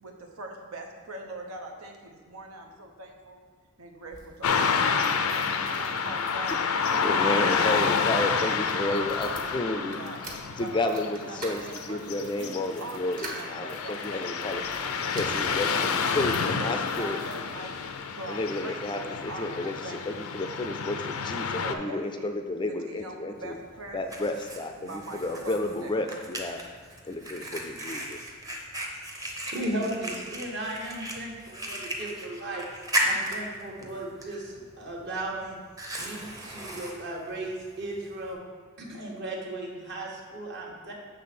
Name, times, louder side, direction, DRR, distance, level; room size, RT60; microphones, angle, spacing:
voice 1, 0.0-3.4 3.8-6.6 6.9-10.2 10.5-14.5 14.8-17.8 18.1-20.2 20.6-21.1 21.6-24.0 24.8-26.2, right 2 dB, 90° right, 2 dB, 0.8 m, -42 dB
sound 1, 4.0-18.0 18.6-19.4 19.7-19.8 20.0-20.1, right 2 dB, 40° right, 1.1 m, -47 dB
Car passing by / Traffic noise roadway noise, 4.4-21.7, left 5 dB, 85° left, 0.5 m, -29 dB
voice 2, 7.0-10.0 10.6-14.6 15.1-15.7 16.1-17.2 18.3-23.6 23.9-26.6 27.0-28.2, left 2 dB, 20° left, 6 dB, 0.4 m, -31 dB
Fire, 23.4-38.3, equal, 15° right, 0.7 m, -36 dB
voice 3, 29.5-32.6 33.0-35.6 36.0-38.4 38.8-40.9, right 1 dB, 55° right, -2 dB, 1.3 m, -36 dB
7.4 x 3.4 x 5.9 m, 1.5 s
head